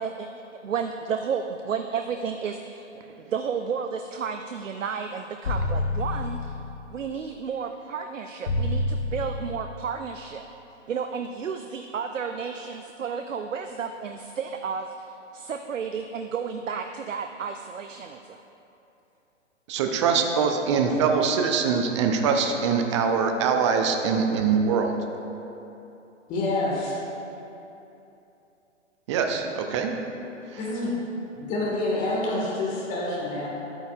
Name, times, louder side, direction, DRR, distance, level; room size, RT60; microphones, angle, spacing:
voice 1, 0.0-2.9 3.2-6.5 6.9-10.4 10.9-18.4, right 6 dB, 85° right, 6 dB, 0.5 m, -32 dB
sound 1, 5.4-6.9 8.5-9.9, left 2 dB, 70° left, 0.8 m, -28 dB
voice 2, 19.7-24.9 29.1-29.9, right 6 dB, 25° right, 4 dB, 0.5 m, -23 dB
voice 3, 26.3-27.0 30.6-30.9 31.4-33.5, left 2 dB, 20° left, -4 dB, 1.6 m, -27 dB
10.5 x 8.9 x 2.4 m, 2.9 s
figure-of-eight pair, 120°, 37 cm